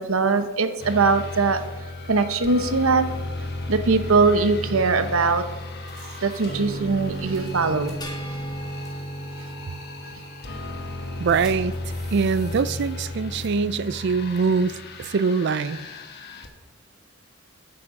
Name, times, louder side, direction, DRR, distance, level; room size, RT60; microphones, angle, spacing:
voice 1, 0.0-1.6 2.1-3.1 3.7-5.4 6.0-7.9, right 4 dB, 80° right, 10 dB, 0.8 m, -21 dB
sound 1, 0.8-16.5, left 1 dB, 50° left, 1.2 m, -34 dB
sound 2, 5.9-6.4 7.3-7.6 7.8-7.9 8.8-9.0 9.7-9.8 11.3-13.1 13.4-13.5, right 1 dB, ahead, 2.4 m, -47 dB
sound 3, 8.0-10.6, left 2 dB, 20° left, 1.3 m, -43 dB
voice 2, 11.2-11.7 12.1-15.8, right 5 dB, 55° right, 16 dB, 0.4 m, -23 dB
8.8 x 8.6 x 5.3 m, 1.2 s
head